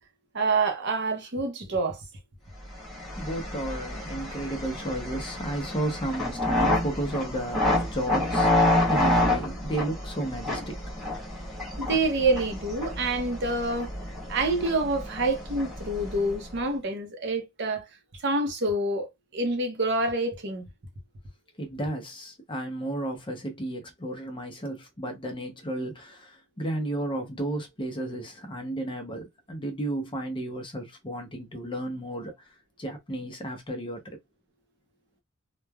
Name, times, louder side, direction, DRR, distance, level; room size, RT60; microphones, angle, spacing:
voice 1, 0.3-2.0 11.8-13.9 14.3-17.8 18.2-20.7, right 2 dB, 55° right, 0.7 m, -27 dB
sound 1, 2.7-16.6, left 1 dB, ahead, 1.2 m, -29 dB
voice 2, 3.2-10.8 21.6-32.3 32.8-34.2, right 1 dB, 25° left, 0.6 m, -33 dB
3.1 x 2.2 x 2.2 m
head